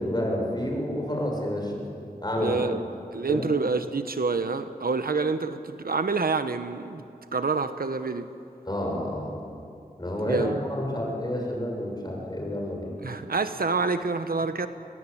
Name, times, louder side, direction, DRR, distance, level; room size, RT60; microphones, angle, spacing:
voice 1, 0.0-1.7 2.2-2.6 3.3-3.5 8.7-9.3 10.0-13.0, left 1 dB, 25° left, 0 dB, 6.7 m, -29 dB
voice 2, 2.4-2.8 3.1-7.0 7.3-8.3 10.2-10.6 13.0-14.7, right 4 dB, 80° right, 10 dB, 1.0 m, -27 dB
22.5 x 21.5 x 8.5 m, 2.5 s
wide cardioid pair, 55°, 15 cm